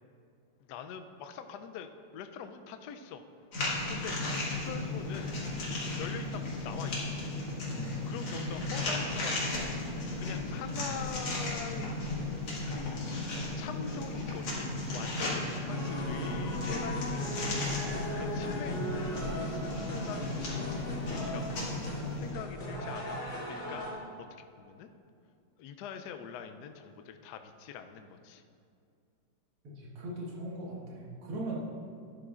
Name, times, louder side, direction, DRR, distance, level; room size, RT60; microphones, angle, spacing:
voice 1, 0.7-3.2 3.9-4.2 4.5-5.3 6.0-7.1 8.1-12.0 12.7-17.6 17.9-21.7 22.2-23.2 23.5-23.8 24.4-24.9 25.6-28.4, left 7 dB, 85° left, 7 dB, 0.9 m, -44 dB
sound 1, 3.5-22.3, left 2 dB, 60° left, 2.6 m, -35 dB
sound 2, 15.7-23.9, equal, 35° left, 2.1 m, -38 dB
voice 2, 29.6-31.6, right 2 dB, 80° right, -5 dB, 2.4 m, -39 dB
12.0 x 11.0 x 2.4 m, 2.4 s
omnidirectional pair, 2.3 m